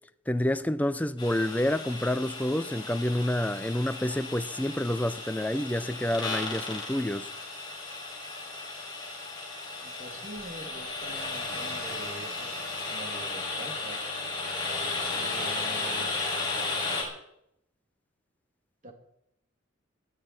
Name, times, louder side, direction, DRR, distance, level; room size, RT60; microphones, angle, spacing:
voice 1, 0.3-7.3, left 1 dB, 10° left, 0.6 m, -28 dB
sound 1, 1.2-17.0, left 3 dB, 25° left, 5.7 m, -35 dB
voice 2, 9.8-14.0 15.1-16.1 18.8-18.9, right 2 dB, 40° right, 2.7 m, -44 dB
20.5 x 13.5 x 4.5 m
head